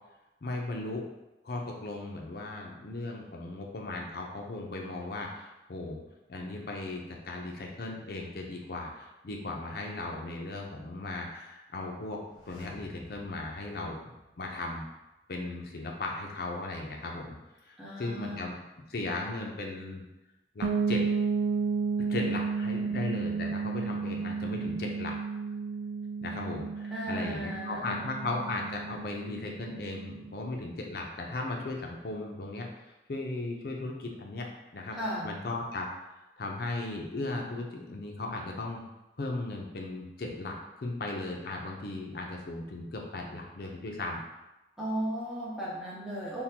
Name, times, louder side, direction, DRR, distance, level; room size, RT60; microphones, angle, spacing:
voice 1, 0.4-1.0 1.4-6.0 6.3-12.2 12.5-14.8 15.3-17.4 17.7-18.6 18.9-20.0 20.5-21.0 22.0-25.1 26.2-32.7 33.1-34.5 34.7-35.0 35.2-38.8 39.2-44.2, left 2 dB, 55° left, 0 dB, 0.5 m, -37 dB
sound 1, 12.2-15.0 15.3-15.4, left 1 dB, 25° left, 0.8 m, -53 dB
voice 2, 17.8-18.6 26.9-28.1 34.9-35.3 44.8-46.4, right 1 dB, 5° right, -8 dB, 0.8 m, -36 dB
sound 2, 20.6-30.3, right 5 dB, 85° right, 0.4 m, -32 dB
3.6 x 2.2 x 2.8 m, 0.99 s
head